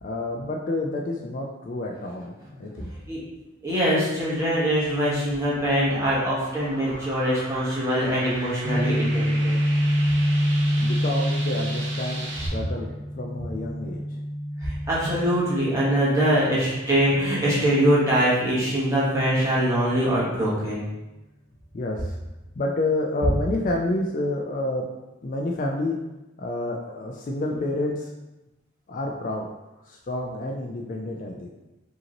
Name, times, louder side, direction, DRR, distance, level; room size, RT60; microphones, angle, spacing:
voice 1, 0.0-2.9 10.8-14.0 21.7-22.2 22.5-24.9 25.2-26.0 26.4-28.1 28.9-29.5 29.9-31.5, left 2 dB, 40° left, 0 dB, 0.3 m, -29 dB
voice 2, 3.6-9.6 14.6-20.8, equal, 15° right, -8 dB, 1.2 m, -23 dB
sound 1, 5.5-12.5, right 2 dB, 60° right, 0.9 m, -37 dB
Guitar, 8.6-16.5, equal, 15° left, 0.7 m, -26 dB
5.1 x 2.9 x 2.9 m, 1.0 s
head